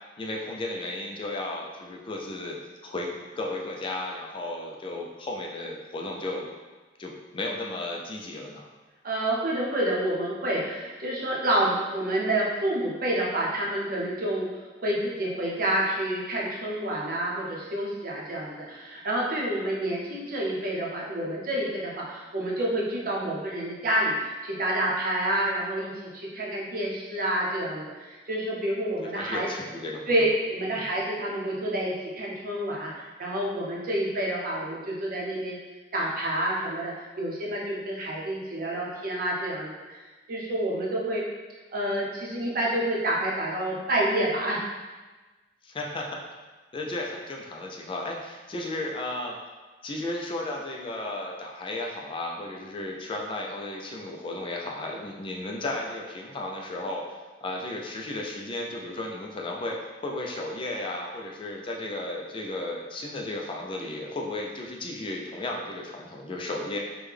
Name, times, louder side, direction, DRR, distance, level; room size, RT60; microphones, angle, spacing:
voice 1, 0.2-2.6 2.8-6.5 7.0-8.7 29.2-30.2 30.7-30.8 45.6-46.2 46.7-49.4 49.8-57.0 57.4-59.8 60.0-66.8, left 2 dB, 30° left, -1 dB, 0.3 m, -34 dB
voice 2, 9.0-14.5 14.8-29.5 30.1-35.6 35.9-40.0 40.3-41.2 41.7-44.6, right 1 dB, 55° right, -4 dB, 0.7 m, -28 dB
3.4 x 2.2 x 3.2 m, 1.2 s
head